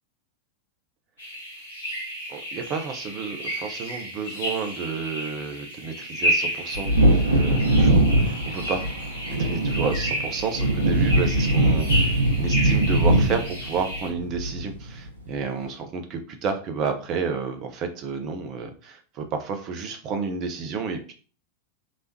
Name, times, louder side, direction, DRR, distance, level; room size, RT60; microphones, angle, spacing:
sound 1, 1.2-14.1, equal, 70° left, 1.5 m, -32 dB
voice 1, 2.3-6.9 7.3-8.9 9.2-21.1, right 5 dB, 35° right, 6 dB, 0.6 m, -31 dB
Wind / Thunder, 6.7-15.0 15.3-15.4, right 1 dB, 75° right, 0.9 m, -21 dB
3.4 x 3.1 x 2.7 m, 0.39 s
figure-of-eight pair, 90°, 0 cm